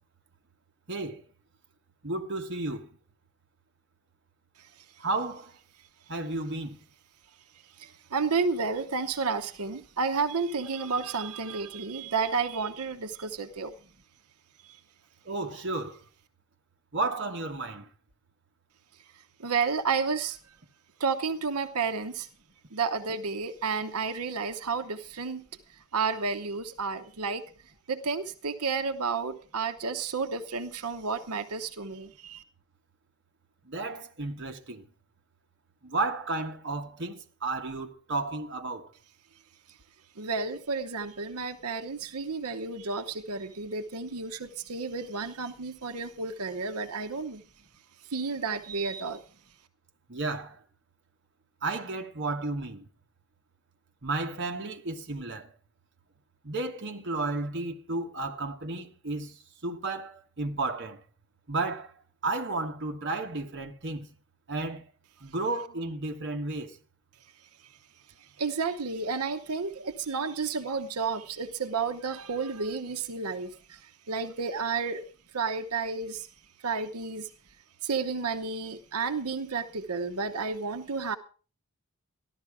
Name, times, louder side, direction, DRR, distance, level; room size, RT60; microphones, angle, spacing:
voice 1, 0.9-1.2 2.0-2.9 5.0-5.5 6.1-6.8 15.2-16.0 16.9-17.9 33.7-34.8 35.8-38.9 50.1-50.6 51.6-52.8 54.0-55.5 56.4-59.4 59.6-61.0 61.5-61.9 62.2-64.1 64.5-64.8 65.2-66.7, right 2 dB, 55° right, 1.3 m, -32 dB
voice 2, 7.8-13.7 14.6-14.8 19.4-20.4 21.0-22.3 22.7-25.4 25.9-27.4 27.9-32.4 40.2-47.4 48.1-49.2 68.4-75.1 75.3-76.3 76.6-77.3 77.8-81.2, right 4 dB, 85° right, 0.9 m, -31 dB
14.5 x 12.0 x 4.9 m
head